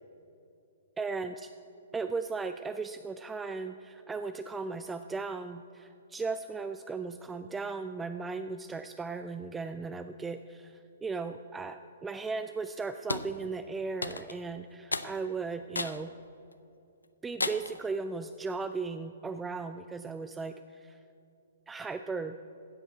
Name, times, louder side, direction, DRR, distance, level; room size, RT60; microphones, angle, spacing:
voice 1, 1.0-1.5 1.9-16.1 17.2-21.0 21.7-22.4, right 4 dB, 10° right, 9 dB, 0.3 m, -36 dB
sound 1, 13.1-13.3 14.0-14.4 14.9-15.1 15.7-16.0 16.5-16.6 17.4-17.8, left 3 dB, 80° left, 0.5 m, -33 dB
16.0 x 5.4 x 7.4 m, 2.7 s
figure-of-eight pair, 120°, 0 cm